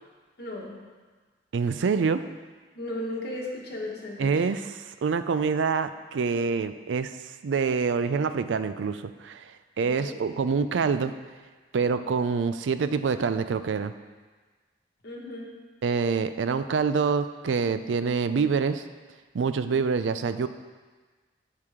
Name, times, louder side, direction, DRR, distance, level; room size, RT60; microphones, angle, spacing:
voice 1, 0.4-0.8 2.7-4.4 9.8-10.2 15.0-15.6, left 1 dB, 60° left, -2 dB, 1.5 m, -36 dB
voice 2, 1.5-2.2 4.2-7.1 7.4-9.5 9.8-11.1 11.7-13.9 15.8-18.8 19.3-20.5, right 5 dB, 90° right, 12 dB, 0.4 m, -26 dB
13.0 x 4.7 x 3.6 m, 1.4 s
head